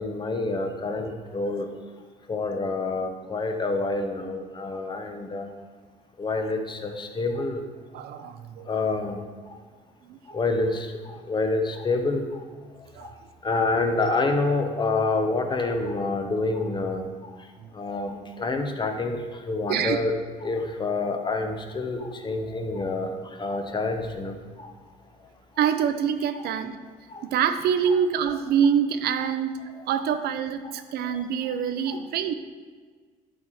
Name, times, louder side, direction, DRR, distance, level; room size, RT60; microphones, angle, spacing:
voice 1, 0.0-1.7 2.3-5.5 6.2-7.6 8.7-9.2 10.3-12.4 13.0-13.1 13.4-17.1 17.7-20.1 20.4-24.7 26.3-26.5 27.1-27.2 31.0-31.1 31.9-32.0, left 3 dB, 25° left, 5 dB, 1.0 m, -27 dB
voice 2, 7.9-8.7 10.0-10.2 12.9-13.1 17.6-17.7 19.7-20.0 25.6-26.8 27.2-29.6 29.9-32.3, right 8 dB, 70° right, 9 dB, 0.7 m, -25 dB
11.0 x 4.2 x 4.8 m, 1.5 s
cardioid pair, 110°, 17 cm